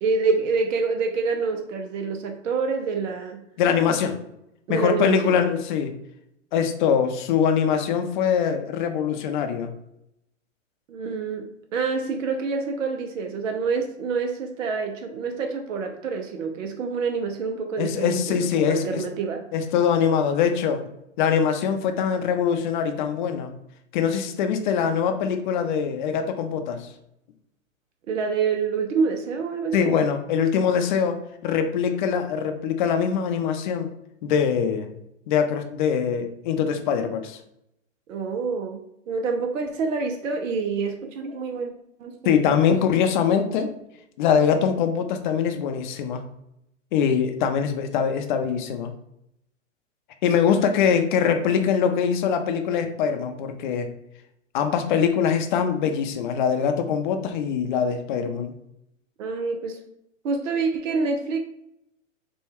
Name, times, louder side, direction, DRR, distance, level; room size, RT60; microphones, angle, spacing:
voice 1, 0.0-3.4 4.7-5.4 10.9-19.4 28.1-29.9 38.1-41.7 42.0-42.5 59.2-59.8 60.2-61.4, right 4 dB, 75° right, 4 dB, 0.7 m, -27 dB
voice 2, 3.6-4.2 4.7-5.9 6.5-9.7 17.8-19.0 19.5-20.8 21.2-23.5 23.9-26.9 29.7-33.9 34.2-34.9 35.3-37.4 42.2-43.7 44.2-46.2 46.9-48.9 50.2-53.9 54.5-58.5, left 7 dB, 40° left, 6 dB, 0.5 m, -23 dB
4.3 x 2.2 x 3.4 m, 0.80 s
hypercardioid pair, 130°, 39 cm